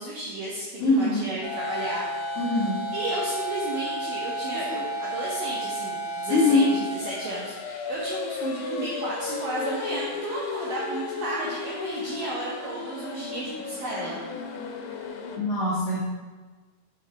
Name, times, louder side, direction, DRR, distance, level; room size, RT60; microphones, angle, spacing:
voice 1, 0.0-2.1 2.9-14.2, right 2 dB, 75° right, -5 dB, 1.9 m, -33 dB
voice 2, 0.8-1.2 2.4-2.7 4.7-4.8 6.3-6.7 15.4-16.0, left 3 dB, 60° left, -11 dB, 1.6 m, -22 dB
sound 1, 1.4-15.4, left 2 dB, 80° left, 2.7 m, -33 dB
7.1 x 6.2 x 3.3 m, 1.4 s
omnidirectional pair, 4.9 m